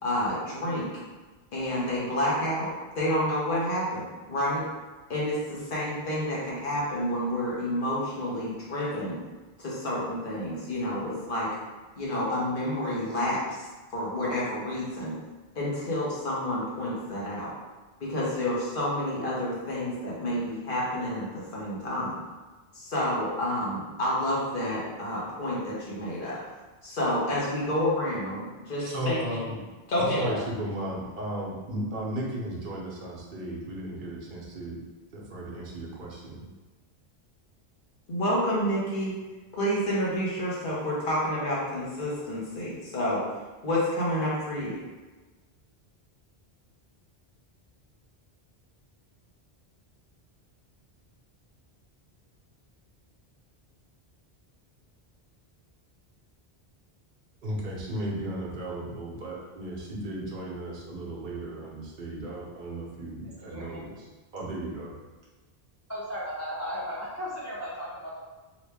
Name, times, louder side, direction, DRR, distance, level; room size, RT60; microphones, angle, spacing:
voice 1, 0.0-0.9 1.5-2.7 2.9-4.6 5.1-9.2 9.6-11.5 12.0-13.6 13.9-15.1 15.5-17.5 18.0-22.2 22.7-26.4 26.8-29.4 29.9-30.4 38.1-39.2 39.5-43.2 43.6-44.8, left 1 dB, 55° left, -7 dB, 1.2 m, -29 dB
voice 2, 28.8-29.6 30.0-34.8 35.1-36.4 57.4-64.1 64.3-64.9, right 1 dB, 55° right, -4 dB, 0.9 m, -35 dB
voice 3, 63.4-63.8 65.9-68.2, equal, 25° left, -7 dB, 0.3 m, -35 dB
3.0 x 2.6 x 3.3 m, 1.2 s
omnidirectional pair, 1.1 m